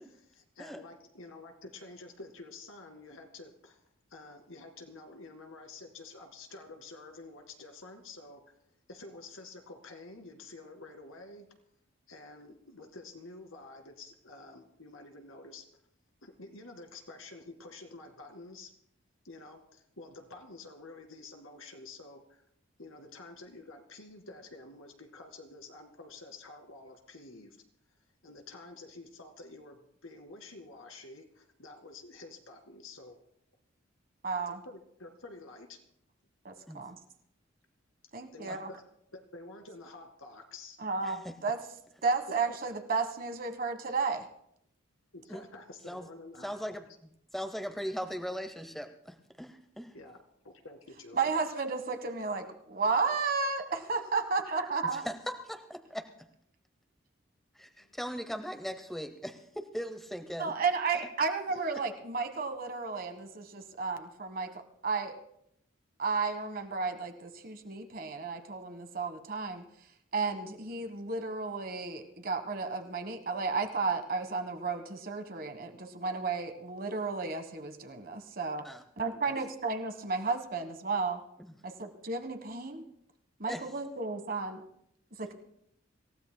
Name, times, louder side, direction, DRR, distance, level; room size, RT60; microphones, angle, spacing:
voice 1, 0.0-3.8 4.1-8.4 8.9-11.5 12.1-15.7 16.2-18.7 19.2-22.4 22.8-27.6 28.2-33.2 34.5-35.8 38.3-38.8 39.1-40.8 42.5-42.6 45.1-46.7 49.9-50.2 50.4-51.4 57.6-57.9 61.5-61.6 79.1-79.2, left 3 dB, 85° left, 4 dB, 2.1 m, -49 dB
voice 2, 34.2-34.6 36.4-37.0 38.1-38.7 40.8-41.6 42.0-44.2 51.1-55.1 60.4-65.2 66.0-69.6 70.1-78.6 79.0-81.2 81.6-82.8 83.4-84.6 85.2-85.3, right 4 dB, 45° right, 7 dB, 1.4 m, -33 dB
voice 3, 41.0-41.3 45.3-45.4 45.9-46.0 46.4-46.8 47.3-49.9 54.8-56.1 57.6-60.5 78.6-78.8 81.4-81.5 83.5-83.6, equal, ahead, 7 dB, 0.7 m, -39 dB
26.5 x 16.0 x 2.2 m, 0.72 s
head